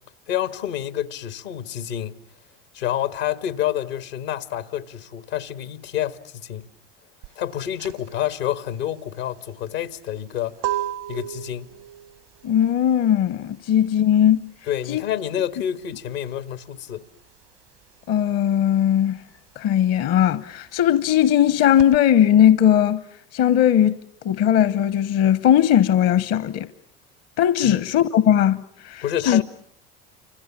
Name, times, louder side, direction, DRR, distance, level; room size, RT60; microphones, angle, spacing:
voice 1, 0.3-2.2 2.7-6.7 7.4-10.6 11.1-11.7 14.7-17.0 27.6-27.8 29.0-29.4, left 11 dB, 80° left, 1.6 m, -28 dB
sound 1, 7.2-17.5 17.7-22.0, right 13 dB, 75° right, 1.1 m, -35 dB
voice 2, 12.4-14.5 14.9-15.0 18.1-19.2 19.6-23.0 23.3-24.0 24.2-26.7 27.4-29.4, left 10 dB, 55° left, 1.0 m, -18 dB
29.0 x 26.5 x 7.3 m
hypercardioid pair, 75°, 29 cm